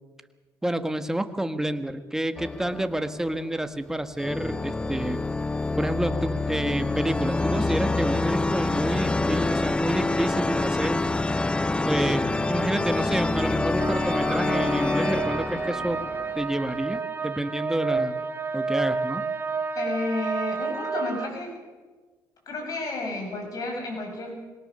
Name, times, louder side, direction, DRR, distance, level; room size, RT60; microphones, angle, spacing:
voice 1, 0.6-5.2 5.8-11.0 11.9-16.0 16.3-18.2 18.5-19.2, right 1 dB, 5° right, 8 dB, 1.5 m, -29 dB
sound 1, 2.4-3.6 4.2-16.8, left 2 dB, 15° left, 0.6 m, -26 dB
sound 2, 13.8-21.3, right 4 dB, 30° right, 1.8 m, -30 dB
voice 2, 19.8-21.5 22.5-24.5, left 2 dB, 55° left, 1 dB, 7.5 m, -31 dB
22.0 x 18.0 x 6.7 m, 1.4 s
cardioid pair, 90°, 7 cm